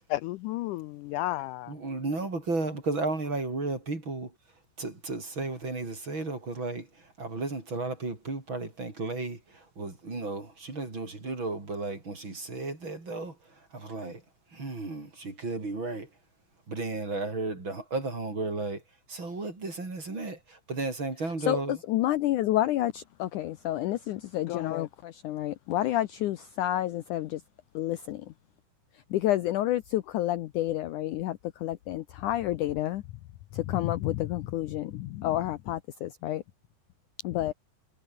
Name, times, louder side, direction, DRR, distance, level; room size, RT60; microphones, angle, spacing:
voice 1, 0.1-1.7 24.5-24.9, left 17 dB, 90° left, 1.8 m, -33 dB
voice 2, 1.7-4.3 4.8-14.2 14.5-16.1 16.7-18.8 19.1-21.8, right 3 dB, 30° right, 5.9 m, -34 dB
voice 3, 21.5-27.4 27.7-28.3 29.1-33.0 33.5-36.4 37.2-37.5, left 14 dB, 70° left, 2.0 m, -29 dB
omnidirectional pair, 4.3 m